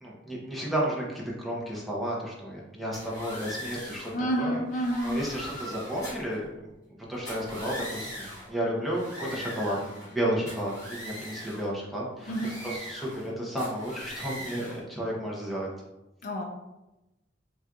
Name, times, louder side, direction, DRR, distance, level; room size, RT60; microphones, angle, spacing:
voice 1, 0.0-4.1 4.4-4.6 5.0-12.3 12.6-15.7, equal, ahead, -5 dB, 0.6 m, -32 dB
sound 1, 2.9-4.2 4.7-6.3 7.1-8.5 8.9-10.2 10.5-11.7 12.2-13.3 13.6-14.8, equal, 20° left, 1.3 m, -41 dB
voice 2, 4.1-5.2 12.3-12.6 16.2-16.4, equal, 45° left, 1 dB, 0.4 m, -29 dB
4.2 x 2.3 x 2.4 m, 0.97 s
head